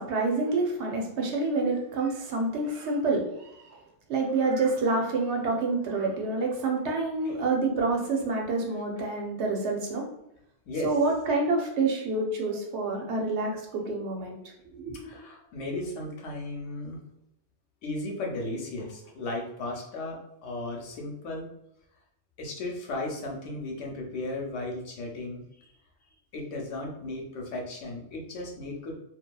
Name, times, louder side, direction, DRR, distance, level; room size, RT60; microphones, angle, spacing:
voice 1, 0.0-3.8 4.1-10.0 10.8-14.4 14.7-15.0, right 3 dB, 70° right, 1 dB, 0.9 m, -28 dB
voice 2, 10.7-11.0 14.9-17.0 17.8-21.5 22.4-25.7 26.3-28.9, left 2 dB, 80° left, 0 dB, 1.0 m, -35 dB
2.7 x 2.3 x 2.2 m, 0.80 s
omnidirectional pair, 1.2 m